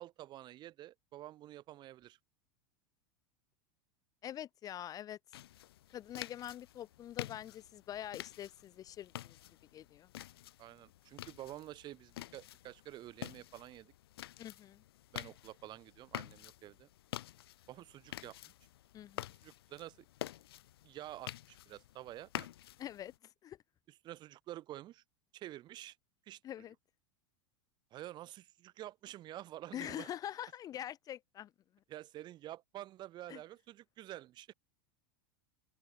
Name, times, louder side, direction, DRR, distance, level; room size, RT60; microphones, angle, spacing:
voice 1, 0.0-2.2 10.6-13.9 15.1-16.9 17.7-18.4 19.4-20.1 20.8-22.5 24.0-25.0 25.3-26.0 26.3-26.4 27.9-30.1 31.9-34.5, right 14 dB, 35° right, 0.7 m, -49 dB
voice 2, 4.2-5.2 5.9-9.4 9.7-10.1 14.4-14.8 18.9-19.3 22.8-23.6 26.4-26.7 29.7-31.5 33.3-33.4, left 11 dB, 30° left, 0.5 m, -44 dB
sound 1, 5.3-23.2, left 14 dB, 85° left, 1.6 m, -48 dB
open air
supercardioid pair, 120°, 12 cm